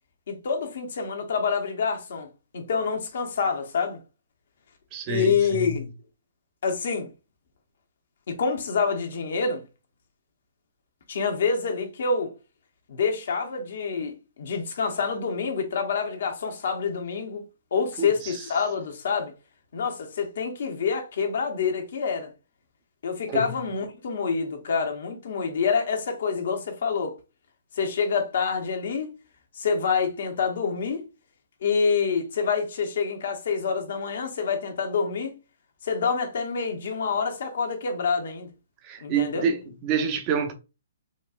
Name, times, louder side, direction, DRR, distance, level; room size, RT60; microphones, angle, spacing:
voice 1, 0.3-2.3 2.5-4.0 5.1-5.9 6.6-7.1 8.3-9.6 11.1-12.3 12.9-17.4 17.7-19.3 19.7-22.3 23.0-27.1 27.8-29.1 29.6-31.0 31.6-35.3 35.8-38.5 39.0-39.5, left 5 dB, 65° left, 0.9 m, -27 dB
voice 2, 4.9-5.7 18.0-18.4 23.3-23.5 38.8-40.5, right 6 dB, 30° right, 0.7 m, -28 dB
4.1 x 2.3 x 2.4 m
hypercardioid pair, 135°, 0 cm